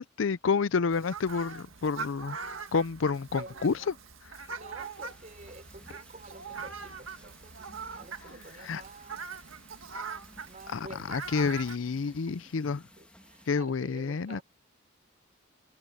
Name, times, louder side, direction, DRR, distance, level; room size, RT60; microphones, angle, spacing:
voice 1, 0.0-2.4 2.7-3.7 8.6-8.8 10.7-12.8 13.5-14.4, left 5 dB, 75° left, 0.5 m, -29 dB
Fowl, 0.9-11.8, right 5 dB, 80° right, 1.9 m, -42 dB
voice 2, 3.3-3.9 4.5-7.6 7.9-9.3 10.4-11.5 11.9-12.5 13.0-14.4, right 2 dB, 40° right, 4.4 m, -49 dB
sound 1, 4.8-13.5, left 1 dB, 5° left, 2.5 m, -57 dB
head